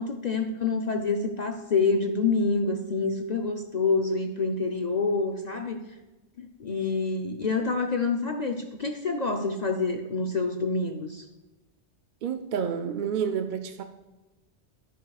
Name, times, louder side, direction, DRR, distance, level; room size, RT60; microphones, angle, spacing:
voice 1, 0.0-5.8 6.4-11.2, left 4 dB, 45° left, 4 dB, 0.6 m, -27 dB
voice 2, 12.2-13.8, right 7 dB, 55° right, 7 dB, 0.6 m, -29 dB
10.5 x 10.0 x 2.3 m, 1.1 s
omnidirectional pair, 1.1 m